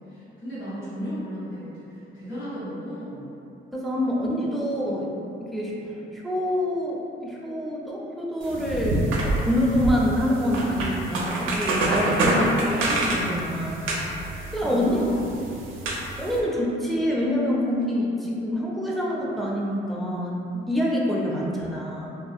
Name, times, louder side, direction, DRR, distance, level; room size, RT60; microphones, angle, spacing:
voice 1, 0.0-3.3 3.9-4.1 4.4-4.5 8.5-8.6 14.6-16.0 21.4-21.5, equal, 70° left, -11 dB, 1.0 m, -35 dB
voice 2, 3.7-5.1 5.4-13.8 14.5-15.0 16.2-20.4 20.7-22.1, left 1 dB, ahead, -5 dB, 0.4 m, -26 dB
sound 1, 8.4-16.4, right 2 dB, 85° right, 0.4 m, -27 dB
2.4 x 2.1 x 2.5 m, 2.8 s
cardioid pair, 90°, 20 cm